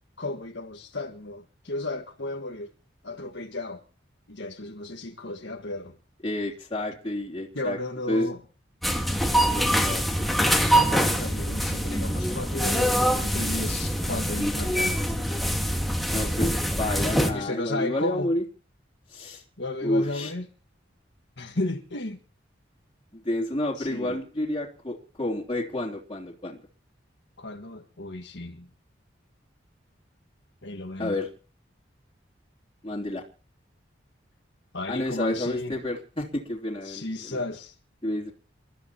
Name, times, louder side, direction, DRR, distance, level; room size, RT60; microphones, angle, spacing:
voice 1, 0.2-2.7 3.0-3.8 4.3-5.9 7.6-8.4 10.7-15.1 17.3-18.3 19.6-20.5 21.4-22.2 23.8-24.2 27.4-28.7 30.6-31.2 34.7-35.8 36.8-37.8, left 2 dB, 65° left, 1.7 m, -34 dB
voice 2, 6.2-7.8 8.1-8.3 9.5-10.5 16.1-18.4 19.1-19.4 19.8-20.3 23.1-26.6 31.0-31.3 32.8-33.2 34.9-37.4 38.0-38.3, left 1 dB, 25° left, 3.2 m, -30 dB
sound 1, 8.8-17.3, equal, ahead, 2.5 m, -24 dB
29.0 x 14.0 x 3.0 m
head